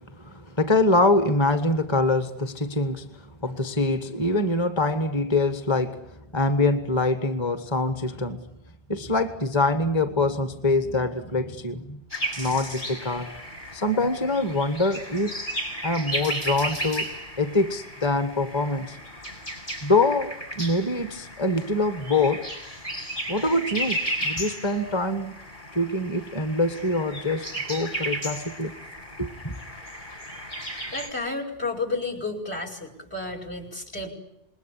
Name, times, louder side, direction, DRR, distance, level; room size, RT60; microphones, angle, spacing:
voice 1, 0.1-8.5 8.9-12.0 12.4-13.4 13.7-15.4 15.8-17.1 17.4-19.0 19.8-22.5 23.3-25.3 25.7-28.7 29.2-29.6, left 2 dB, 25° left, 1.4 m, -24 dB
sound 1, 12.1-31.1, right 1 dB, 45° left, 7.4 m, -34 dB
voice 2, 30.9-34.1, left 3 dB, 65° left, 5.5 m, -31 dB
28.0 x 21.0 x 10.0 m
omnidirectional pair, 1.2 m